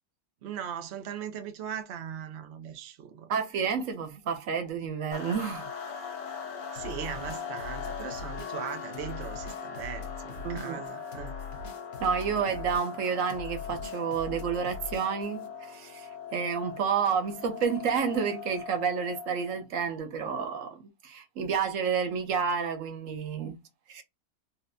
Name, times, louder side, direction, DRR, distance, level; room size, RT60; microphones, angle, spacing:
voice 1, 0.4-3.3 6.7-11.3, right 8 dB, 85° right, 0.5 m, -39 dB
voice 2, 3.3-5.7 10.4-10.8 12.0-23.6 23.9-24.0, right 6 dB, 65° right, 0.9 m, -30 dB
sound 1, 5.1-19.7, left 6 dB, 85° left, 1.5 m, -40 dB
sound 2, 6.8-15.5, left 5 dB, 55° left, 1.0 m, -42 dB
4.1 x 2.1 x 2.5 m
omnidirectional pair, 1.9 m